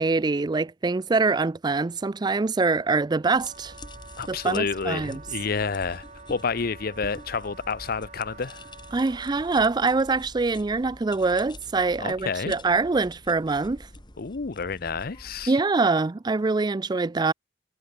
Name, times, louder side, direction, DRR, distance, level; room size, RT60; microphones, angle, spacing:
voice 1, 0.0-3.7 4.3-5.2 8.9-13.9 15.5-17.3, right 3 dB, 25° right, 0.4 m, -24 dB
Wind instrument woodwind instrument, 3.2-9.7, right 4 dB, 40° right, 7.2 m, -47 dB
sound 1, 3.3-15.5, left 1 dB, 25° left, 3.5 m, -46 dB
voice 2, 4.2-6.0 6.3-8.6 12.0-12.5 14.2-15.5, left 5 dB, 55° left, 0.7 m, -29 dB
head